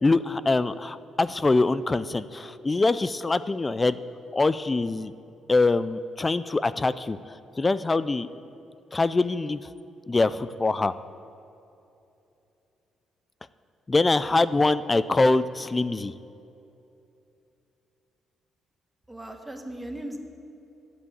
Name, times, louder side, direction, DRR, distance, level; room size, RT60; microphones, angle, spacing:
voice 1, 0.0-4.0 4.3-5.1 5.5-8.3 8.9-9.7 10.1-10.9 13.9-16.1, left 3 dB, 25° left, 15 dB, 0.3 m, -24 dB
voice 2, 19.1-20.2, right 1 dB, 10° right, 4 dB, 1.2 m, -37 dB
9.7 x 8.2 x 7.2 m, 2.8 s
cardioid pair, 90°, 0 cm